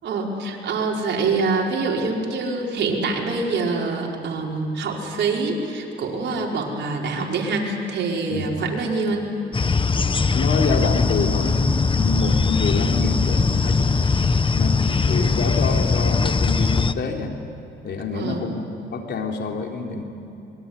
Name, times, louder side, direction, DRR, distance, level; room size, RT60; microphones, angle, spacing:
voice 1, 0.0-9.3 18.1-18.4, right 3 dB, 65° right, -1 dB, 5.1 m, -25 dB
sound 1, 9.5-16.9, left 4 dB, 25° left, 0.9 m, -20 dB
voice 2, 10.3-17.4 17.8-20.0, left 4 dB, 60° left, 2 dB, 3.5 m, -27 dB
26.5 x 22.5 x 9.7 m, 2.8 s
cardioid pair, 90°, 20 cm